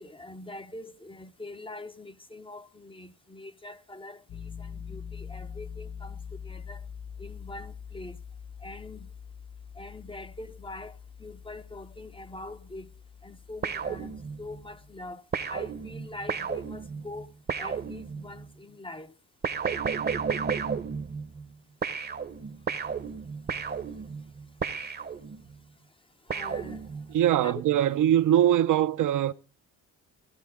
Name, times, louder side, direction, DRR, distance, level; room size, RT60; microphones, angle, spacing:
voice 1, 0.0-6.9 7.2-8.2 8.6-9.1 9.7-12.9 13.2-17.3 17.6-19.1 26.2-26.9 27.4-27.6, left 2 dB, 15° left, 0.6 m, -43 dB
Piano, 4.3-15.1, left 7 dB, 55° left, 1.3 m, -44 dB
sound 1, 13.6-14.6 15.3-18.5 19.4-21.5 21.8-25.6 26.3-27.3, right 6 dB, 25° right, 0.8 m, -33 dB
voice 2, 27.1-29.3, right 11 dB, 55° right, 0.6 m, -22 dB
16.0 x 12.5 x 3.6 m
cardioid pair, 95°, 36 cm